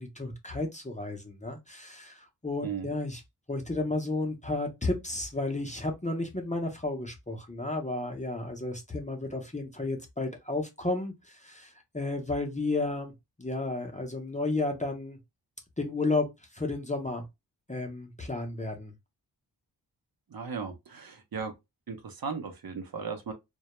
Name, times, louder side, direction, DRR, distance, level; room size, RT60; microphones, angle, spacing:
voice 1, 0.0-3.2 3.5-13.1 13.4-15.2 15.8-17.2 17.7-18.9, left 2 dB, 15° left, 0.6 m, -32 dB
voice 2, 20.3-21.5 21.9-23.3, right 5 dB, 55° right, 0.7 m, -36 dB
2.2 x 2.0 x 2.9 m
wide cardioid pair, 65°, 44 cm